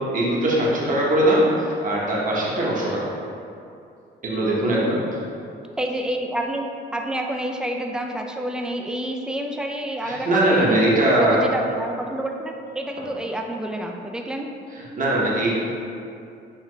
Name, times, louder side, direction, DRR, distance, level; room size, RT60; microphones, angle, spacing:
voice 1, 0.1-3.1 4.2-5.2 10.0-11.5 14.7-15.6, right 1 dB, 40° right, -5 dB, 0.9 m, -21 dB
voice 2, 5.8-6.7 6.9-10.8 11.2-14.5, right 1 dB, 5° right, 2 dB, 0.3 m, -28 dB
5.6 x 2.3 x 3.1 m, 2.5 s
cardioid pair, 90°, 20 cm